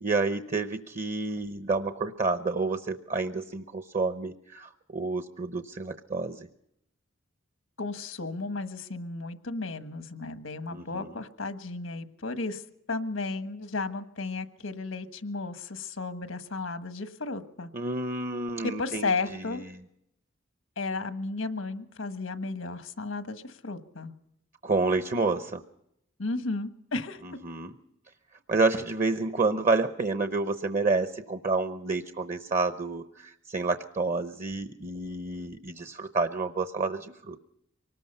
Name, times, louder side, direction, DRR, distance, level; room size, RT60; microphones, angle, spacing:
voice 1, 0.0-6.5 10.7-11.1 17.7-19.4 24.6-25.6 27.2-27.7 28.5-37.4, right 3 dB, 40° right, 9 dB, 0.8 m, -29 dB
voice 2, 7.8-12.6 12.9-17.7 18.6-19.6 20.8-24.1 26.2-27.4, left 3 dB, 90° left, 9 dB, 1.5 m, -34 dB
24.5 x 19.5 x 5.6 m, 0.79 s
head